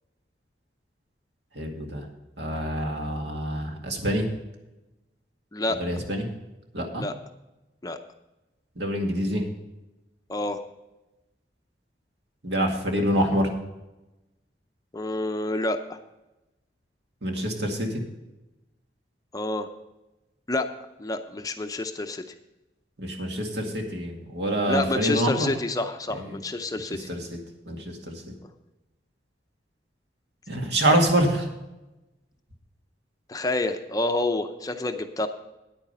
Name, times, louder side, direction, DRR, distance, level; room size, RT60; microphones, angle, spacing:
voice 1, 1.6-2.1 2.4-4.3 5.7-6.3 6.7-7.1 8.8-9.5 12.4-13.5 17.2-18.0 23.0-25.5 26.2-26.4 26.9-27.4 27.7-28.2 30.5-31.5, right 1 dB, 70° right, 2 dB, 2.1 m, -26 dB
voice 2, 14.9-16.0 19.3-19.7 20.5-20.7 21.0-22.2 24.7-27.1 33.3-35.3, left 2 dB, 20° left, 7 dB, 0.6 m, -28 dB
10.0 x 8.9 x 5.5 m, 1.0 s
head